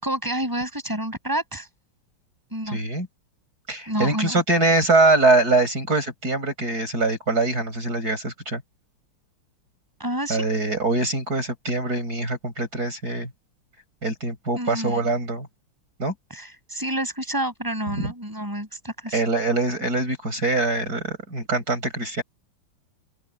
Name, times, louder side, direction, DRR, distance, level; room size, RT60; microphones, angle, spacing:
voice 1, 0.0-1.7 2.5-2.8 3.9-4.4 10.0-10.5 14.5-15.1 16.3-19.2, right 1 dB, 10° right, 7.8 m, -29 dB
voice 2, 2.7-3.1 3.7-8.6 10.3-13.3 14.0-15.5 16.0-16.1 18.0-18.1 19.1-22.2, right 2 dB, 45° right, 7.7 m, -23 dB
open air
omnidirectional pair, 2.3 m